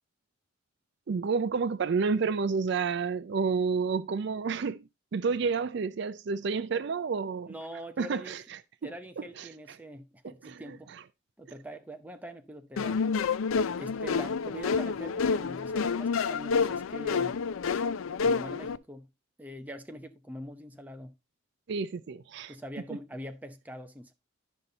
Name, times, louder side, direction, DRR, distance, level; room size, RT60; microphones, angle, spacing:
voice 1, 1.1-7.5 8.0-8.9 9.4-9.5 10.4-10.8 21.7-22.5, right 5 dB, 60° right, 0.4 m, -30 dB
voice 2, 7.5-8.4 8.8-10.9 11.4-13.0 13.8-17.4 18.2-19.1 19.4-21.2 22.5-24.1, equal, 10° right, 0.7 m, -43 dB
sound 1, 12.8-18.8, left 5 dB, 85° left, 0.4 m, -29 dB
10.5 x 5.5 x 3.9 m
head